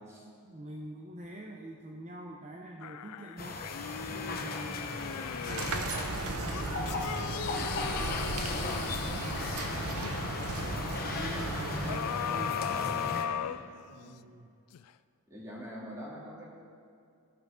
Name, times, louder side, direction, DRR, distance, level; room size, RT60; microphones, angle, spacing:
voice 1, 0.4-3.7 4.1-7.1 7.5-10.0 10.4-12.6 13.9-14.5, right 1 dB, 35° right, 0 dB, 0.7 m, -45 dB
sound 1, 2.8-6.0 6.5-10.1 11.9-14.2 14.7-14.8, left 9 dB, 85° left, 0.3 m, -38 dB
sound 2, 3.4-13.2, left 3 dB, 45° left, 0.9 m, -37 dB
sound 3, 5.5-12.0, right 3 dB, 85° right, 0.8 m, -36 dB
voice 2, 13.3-13.7 15.3-16.5, equal, 15° right, -5 dB, 2.5 m, -45 dB
16.5 x 5.8 x 5.0 m, 2.4 s
head